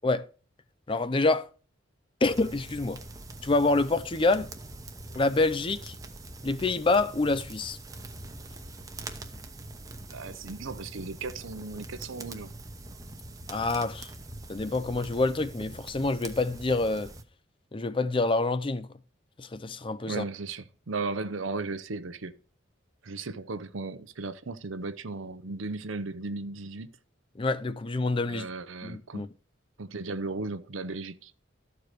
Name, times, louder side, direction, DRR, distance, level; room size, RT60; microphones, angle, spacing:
voice 1, 0.9-1.5 2.2-3.0 3.4-4.5 5.1-5.9 6.4-7.8 13.5-14.1 14.5-17.1 17.7-18.9 19.4-20.2 27.4-28.5 28.8-29.3, left 3 dB, 25° left, 0.5 m, -27 dB
sound 1, 2.2-17.2, right 2 dB, 20° right, 0.9 m, -43 dB
voice 2, 10.1-12.5 20.1-22.4 23.0-26.9 28.3-29.2 29.8-31.3, right 3 dB, 85° right, 0.8 m, -36 dB
13.5 x 4.7 x 6.6 m
head